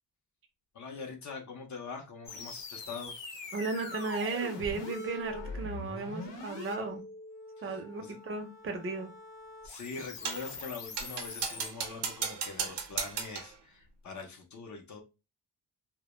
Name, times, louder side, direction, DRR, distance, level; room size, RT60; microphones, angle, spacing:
voice 1, 0.7-3.2 7.6-8.2 9.6-15.0, left 4 dB, 45° left, 2 dB, 0.5 m, -43 dB
sound 1, 2.3-11.7, left 3 dB, 85° left, 0.8 m, -43 dB
voice 2, 3.5-7.0 7.6-9.1, right 3 dB, 30° right, 5 dB, 0.5 m, -35 dB
sound 2, 10.2-10.5 11.0-13.6, right 6 dB, 75° right, 0.6 m, -36 dB
2.1 x 2.0 x 2.9 m, 0.28 s
wide cardioid pair, 140°, 42 cm